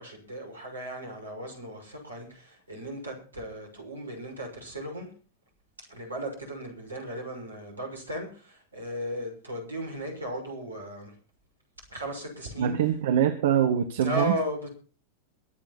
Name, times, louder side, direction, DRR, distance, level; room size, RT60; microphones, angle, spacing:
voice 1, 0.0-5.1 5.8-11.2 11.9-12.7 14.0-14.7, equal, 75° right, 6.2 m, -36 dB
voice 2, 12.6-14.3, right 9 dB, 60° right, 1.4 m, -24 dB
23.0 x 8.9 x 4.2 m
figure-of-eight pair, 90°, 0 cm